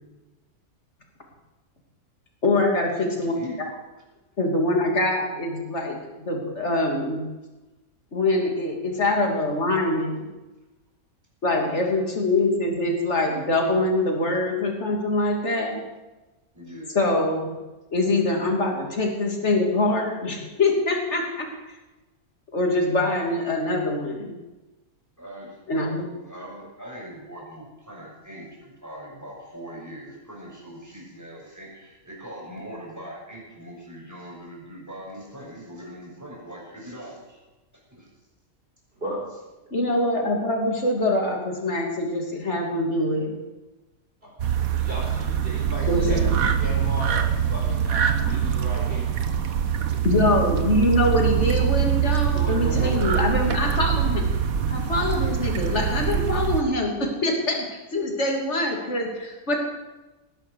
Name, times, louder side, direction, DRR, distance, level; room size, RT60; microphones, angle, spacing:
voice 1, 2.4-3.3 4.4-7.3 8.1-10.2 11.4-15.8 16.9-17.6 17.9-21.5 22.5-24.3 25.7-26.1 39.7-43.4 45.9-46.4 49.9-54.3 54.7-59.6, left 2 dB, 50° left, 1 dB, 3.2 m, -24 dB
voice 2, 3.1-3.6 11.6-12.0 16.5-17.1 25.2-37.4 37.9-38.1, equal, 10° right, -4 dB, 6.2 m, -41 dB
sound 1, 44.4-56.6, right 8 dB, 75° right, 1.6 m, -24 dB
voice 3, 44.7-49.4 52.1-53.1, equal, 40° right, -2 dB, 5.3 m, -35 dB
19.0 x 10.5 x 6.4 m, 1.1 s
omnidirectional pair, 1.5 m